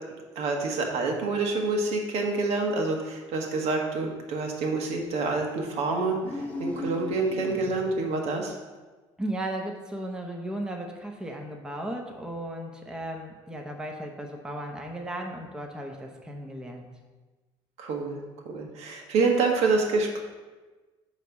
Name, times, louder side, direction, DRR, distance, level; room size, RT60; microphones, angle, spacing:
voice 1, 0.3-8.6 17.8-18.2 18.5-20.2, right 3 dB, 70° right, 2 dB, 1.3 m, -27 dB
sound 1, 6.2-8.1, left 1 dB, 15° left, 1.2 m, -37 dB
voice 2, 9.2-16.9, right 1 dB, 5° right, 1 dB, 0.9 m, -35 dB
9.0 x 3.2 x 5.9 m, 1.3 s
cardioid pair, 125°, 11 cm